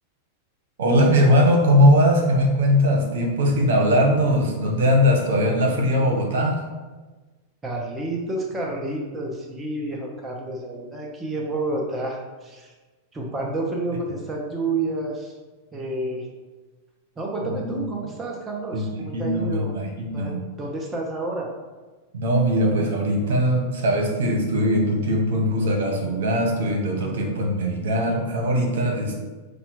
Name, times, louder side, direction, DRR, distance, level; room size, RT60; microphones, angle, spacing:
voice 1, 0.8-6.6 17.4-17.8 18.7-18.8 19.1-20.4 22.1-29.2, equal, 80° right, 2 dB, 1.0 m, -20 dB
voice 2, 7.6-12.7 13.1-15.3 15.7-16.3 17.2-19.7 20.1-21.5, right 2 dB, 15° right, -1 dB, 0.6 m, -29 dB
5.0 x 2.2 x 4.6 m, 1.3 s
supercardioid pair, 160°, 0 cm